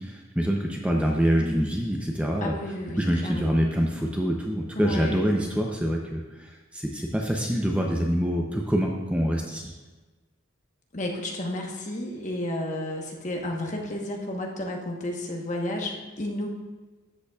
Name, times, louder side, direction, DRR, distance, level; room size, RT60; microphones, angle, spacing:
voice 1, 0.0-2.5 3.0-9.7, equal, 5° right, 0 dB, 0.6 m, -26 dB
voice 2, 2.4-3.5 4.7-5.2 10.9-16.5, left 1 dB, 35° left, 0 dB, 1.1 m, -32 dB
13.0 x 8.1 x 2.4 m, 1.2 s
head